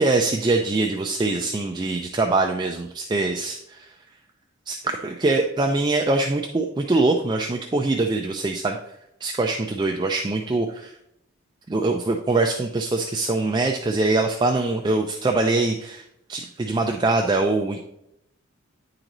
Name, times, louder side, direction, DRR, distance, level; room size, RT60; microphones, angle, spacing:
voice 1, 0.0-3.9 4.7-8.8 9.2-10.9 11.7-17.8, right 2 dB, 20° right, 2 dB, 0.3 m, -23 dB
9.8 x 3.9 x 3.0 m, 0.79 s
head